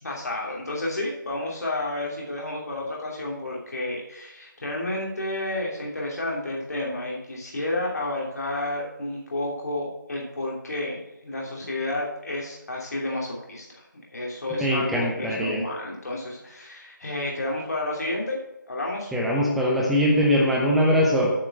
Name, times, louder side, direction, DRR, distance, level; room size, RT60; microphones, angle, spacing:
voice 1, 0.0-18.4 18.7-19.1, left 2 dB, 50° left, -2 dB, 2.8 m, -31 dB
voice 2, 14.5-15.6 19.1-21.3, equal, ahead, -3 dB, 0.5 m, -22 dB
8.9 x 5.1 x 7.8 m, 0.91 s
figure-of-eight pair, 165°, 11 cm